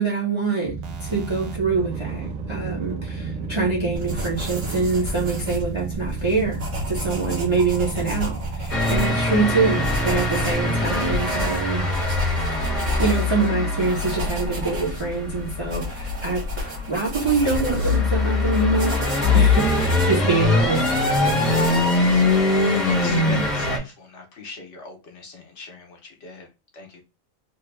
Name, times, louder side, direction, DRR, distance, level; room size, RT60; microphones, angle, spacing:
voice 1, 0.0-11.8 12.5-19.0 19.3-20.9 21.2-21.6 23.1-23.4, right 4 dB, 30° right, 0.7 m, -25 dB
sound 1, 0.6-12.7, right 4 dB, 85° right, 1.1 m, -33 dB
sound 2, 3.9-22.4, left 1 dB, 65° right, 1.5 m, -32 dB
sound 3, 8.7-23.8, left 3 dB, 40° left, 0.9 m, -22 dB
voice 2, 22.0-22.6 22.8-26.5 26.7-27.0, left 2 dB, 65° left, 1.1 m, -40 dB
3.1 x 2.2 x 3.3 m
omnidirectional pair, 1.4 m